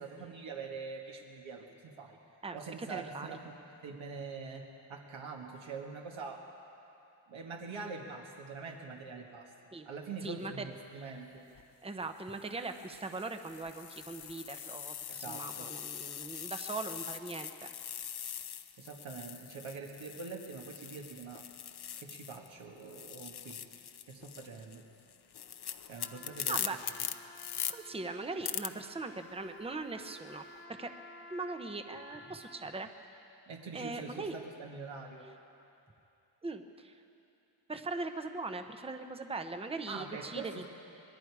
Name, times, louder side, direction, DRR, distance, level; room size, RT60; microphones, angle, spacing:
voice 1, 0.0-2.2 2.5-3.6 3.8-6.5 7.3-9.5 9.9-11.4 15.1-15.7 18.8-21.5 22.0-23.6 24.1-24.9 25.9-26.6 33.5-35.3 39.9-40.6, right 4 dB, 80° right, 0 dB, 1.9 m, -44 dB
voice 2, 2.4-3.4 9.7-9.9 10.2-10.7 10.9-11.0 11.8-17.7 26.5-26.8 27.7-30.4 30.8-30.9 31.3-32.9 33.7-34.4 36.4-36.9 37.7-40.6, right 3 dB, 15° right, 7 dB, 0.8 m, -40 dB
sound 1, 11.4-11.6 12.4-22.5 22.8-27.7 28.4-28.7, left 9 dB, 55° left, 0.7 m, -42 dB
Trumpet, 25.9-32.9, left 2 dB, 30° left, 1.4 m, -53 dB
26.5 x 20.5 x 4.8 m, 2.7 s
wide cardioid pair, 165°, 46 cm